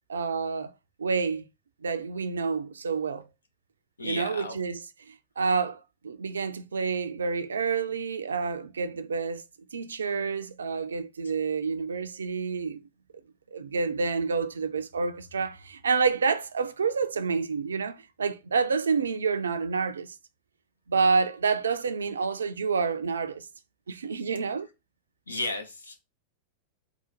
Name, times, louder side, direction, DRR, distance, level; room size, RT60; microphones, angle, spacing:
voice 1, 0.1-0.7 1.0-1.5 1.8-3.3 4.0-9.4 9.7-12.8 13.5-20.2 20.9-23.5 23.9-24.7, right 5 dB, 70° right, 0.4 m, -28 dB
voice 2, 4.0-4.6 25.3-26.0, left 2 dB, 75° left, 0.7 m, -34 dB
3.8 x 2.2 x 4.3 m
figure-of-eight pair, 90°, 0 cm